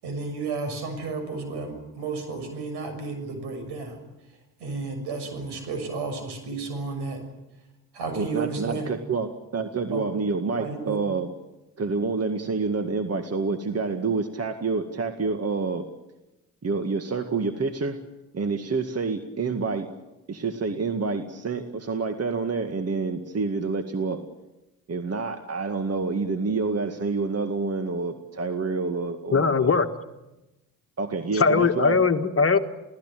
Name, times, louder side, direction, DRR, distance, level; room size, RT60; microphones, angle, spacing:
voice 1, 0.0-4.0 4.6-7.3 7.9-8.9 9.9-10.1 10.5-11.0, right 4 dB, 70° right, 7 dB, 6.7 m, -32 dB
voice 2, 8.2-11.3 11.8-15.9 16.6-18.0 18.3-19.9 20.3-24.2 24.9-29.8 31.0-32.0, right 4 dB, 35° right, 7 dB, 2.1 m, -28 dB
voice 3, 29.3-29.9 31.3-32.6, left 5 dB, 35° left, 7 dB, 1.8 m, -20 dB
29.0 x 18.0 x 9.2 m, 1.0 s
hypercardioid pair, 55°, 42 cm